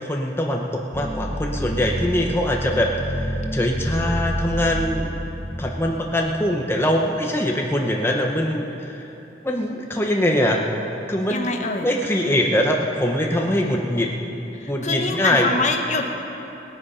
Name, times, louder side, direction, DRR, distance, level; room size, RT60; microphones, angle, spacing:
voice 1, 0.1-5.2 5.6-9.1 9.4-10.6 11.1-14.1 14.7-15.5, left 1 dB, 15° left, 0 dB, 0.8 m, -23 dB
sound 1, 0.9-6.7, equal, 20° right, 1.3 m, -29 dB
voice 2, 11.3-11.9 14.8-16.1, left 3 dB, 40° left, 4 dB, 1.0 m, -24 dB
19.5 x 8.6 x 5.6 m, 3.0 s
head